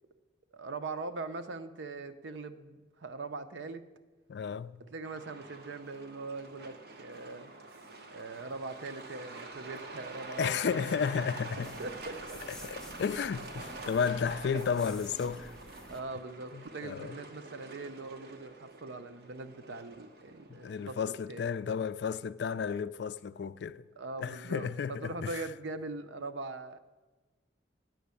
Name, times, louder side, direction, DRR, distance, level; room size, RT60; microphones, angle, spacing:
voice 1, 0.5-3.9 4.9-7.5 8.1-10.9 11.8-12.4 14.5-14.7 15.9-21.0 21.3-21.7 24.0-26.8, right 3 dB, 75° right, 0.6 m, -41 dB
voice 2, 4.3-4.8 10.4-11.7 12.6-15.5 16.5-17.1 20.5-23.8 24.2-25.4, left 6 dB, 60° left, 0.3 m, -33 dB
Truck, 5.0-20.9, right 2 dB, 55° right, 0.9 m, -47 dB
sound 1, 10.6-16.0, left 1 dB, 5° left, 0.6 m, -51 dB
9.2 x 6.3 x 8.2 m
head